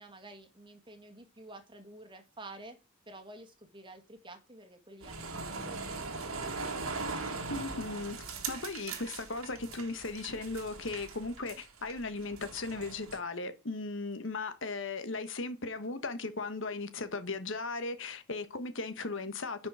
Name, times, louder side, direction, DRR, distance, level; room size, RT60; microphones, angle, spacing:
voice 1, 0.0-2.8 3.1-6.9, right 2 dB, 25° right, 1.8 m, -51 dB
sound 1, 5.0-13.2, right 4 dB, 90° right, 1.9 m, -40 dB
voice 2, 7.5-8.2 8.5-19.7, left 3 dB, 65° left, 1.3 m, -37 dB
9.9 x 5.4 x 4.8 m
head